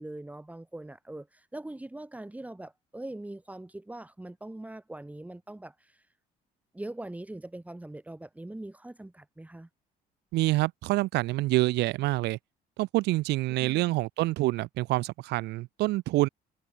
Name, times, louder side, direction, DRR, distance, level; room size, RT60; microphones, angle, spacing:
voice 1, 0.0-6.1 6.7-9.7, right 1 dB, 10° right, 4.1 m, -42 dB
voice 2, 10.3-12.4 12.8-16.3, right 19 dB, 80° right, 1.1 m, -27 dB
cardioid pair, 110°, 17 cm